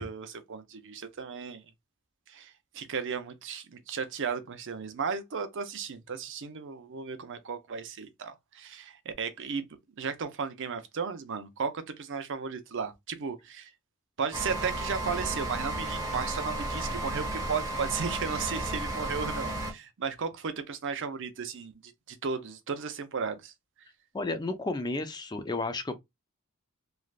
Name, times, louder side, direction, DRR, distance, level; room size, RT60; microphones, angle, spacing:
voice 1, 0.0-1.6 2.3-9.7 10.0-13.7 14.2-23.5, right 5 dB, 55° right, 0.6 m, -35 dB
sound 1, 14.3-19.7, right 1 dB, 15° right, 1.0 m, -33 dB
voice 2, 24.1-26.0, left 2 dB, 20° left, 0.4 m, -32 dB
3.2 x 2.4 x 2.3 m
head